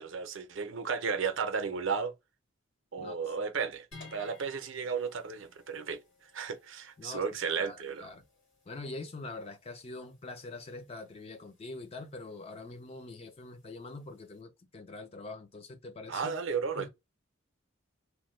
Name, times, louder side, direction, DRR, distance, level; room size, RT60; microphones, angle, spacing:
voice 1, 0.0-2.1 2.9-6.0 6.3-8.1 16.1-16.9, right 5 dB, 65° right, 0.6 m, -34 dB
voice 2, 3.0-3.4 7.0-7.2 7.6-8.2 8.7-16.3 16.8-16.9, left 3 dB, 30° left, 0.4 m, -44 dB
sound 1, 3.9-14.4, left 3 dB, 60° left, 1.8 m, -59 dB
3.0 x 2.2 x 3.0 m
head